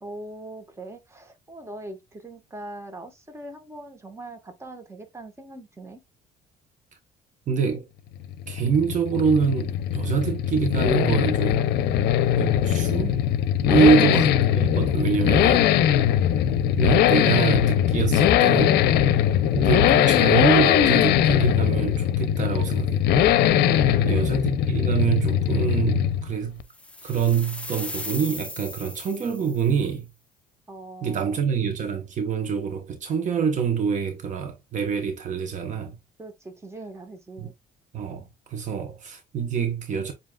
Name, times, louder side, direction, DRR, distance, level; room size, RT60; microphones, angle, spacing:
voice 1, 0.0-6.0 13.7-13.9 23.5-24.3 30.7-31.4 36.2-37.5, right 2 dB, 15° right, 1.3 m, -41 dB
voice 2, 7.5-7.9 8.5-11.7 12.4-13.2 13.6-16.0 16.8-18.8 19.5-23.4 24.0-26.6 27.0-30.1 31.0-36.0 37.4-37.5 37.9-40.1, right 6 dB, 50° right, 1.0 m, -25 dB
Accelerating revving vroom, 8.2-26.3 26.6-26.7, left 11 dB, 75° left, 0.6 m, -21 dB
sound 1, 26.7-29.8, left 2 dB, 5° left, 0.4 m, -37 dB
7.4 x 2.8 x 2.3 m
cardioid pair, 110°, 17 cm